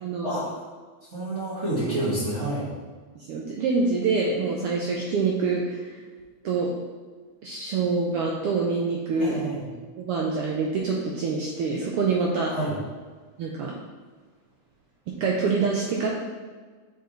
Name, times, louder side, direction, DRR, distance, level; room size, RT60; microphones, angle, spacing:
voice 1, 0.0-0.4 3.3-5.8 6.4-6.7 7.4-9.4 10.0-12.5 13.4-13.7 15.2-16.1, right 4 dB, 80° right, -2 dB, 1.3 m, -25 dB
voice 2, 1.1-2.7 9.2-9.8 12.4-12.8, right 1 dB, 30° right, -10 dB, 1.5 m, -29 dB
7.8 x 4.6 x 3.2 m, 1.4 s
omnidirectional pair, 3.3 m